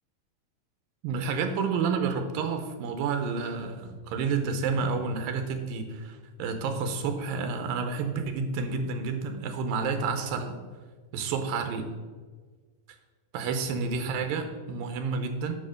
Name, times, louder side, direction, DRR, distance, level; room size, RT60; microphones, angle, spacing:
voice 1, 1.0-10.6 11.1-11.9 13.3-15.6, right 5 dB, 85° right, 6 dB, 2.5 m, -30 dB
8.9 x 3.7 x 6.4 m, 1.5 s
omnidirectional pair, 4.0 m